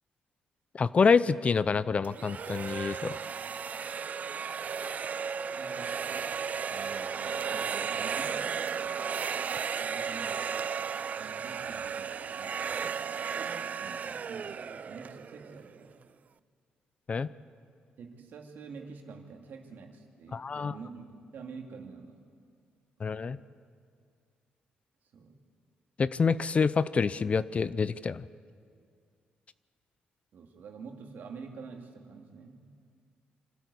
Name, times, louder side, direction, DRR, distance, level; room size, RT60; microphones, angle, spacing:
voice 1, 0.7-3.2 17.1-17.3 20.3-20.7 23.0-23.4 26.0-28.2, left 5 dB, 40° left, 17 dB, 0.6 m, -27 dB
sound 1, 2.0-15.9, right 6 dB, 50° right, 0.5 m, -34 dB
voice 2, 5.5-6.4 6.6-8.8 9.8-10.5 11.2-16.0 18.0-22.2 25.1-25.3 30.3-32.7, right 5 dB, 65° right, 3 dB, 2.4 m, -47 dB
25.5 x 13.0 x 8.3 m, 2.2 s
cardioid pair, 75°, 3 cm